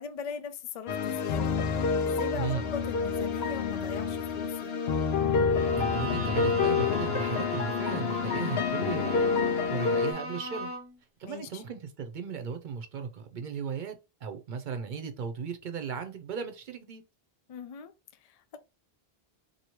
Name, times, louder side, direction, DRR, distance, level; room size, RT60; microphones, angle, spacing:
voice 1, 0.0-4.8 11.2-11.6 17.5-17.9 18.2-18.6, left 6 dB, 55° left, 0.4 m, -40 dB
sound 1, 0.9-10.1, left 5 dB, 90° left, 0.8 m, -28 dB
voice 2, 2.3-2.7 5.8-9.3 9.7-10.7 11.2-14.0 14.2-17.0, right 6 dB, 55° right, 0.7 m, -36 dB
Bowed string instrument, 5.5-11.0, right 1 dB, 15° right, 0.5 m, -38 dB
2.9 x 2.7 x 2.8 m
omnidirectional pair, 1.0 m